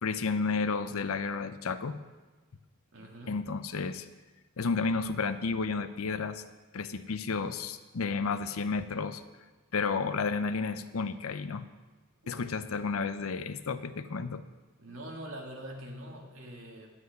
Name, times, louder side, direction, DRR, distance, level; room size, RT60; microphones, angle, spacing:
voice 1, 0.0-2.0 3.3-4.1 4.6-6.4 6.7-9.2 9.7-11.7 12.3-14.4, left 4 dB, 75° left, 12 dB, 0.6 m, -32 dB
voice 2, 2.9-3.5 12.2-12.5 14.8-16.9, right 1 dB, 70° right, 0 dB, 2.0 m, -44 dB
10.5 x 9.7 x 5.3 m, 1.3 s
head